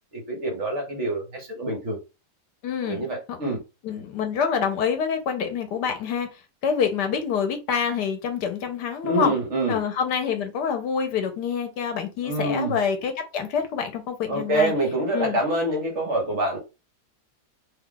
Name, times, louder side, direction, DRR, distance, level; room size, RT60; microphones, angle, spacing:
voice 1, 0.1-2.0 2.8-3.6 9.0-9.8 12.2-12.8 14.3-16.6, right 1 dB, 50° right, 1.3 m, -26 dB
voice 2, 2.6-3.6 3.8-6.3 6.6-9.3 9.7-14.7 15.1-15.4, left 7 dB, 85° left, 1.4 m, -26 dB
3.1 x 2.4 x 3.7 m
omnidirectional pair, 1.7 m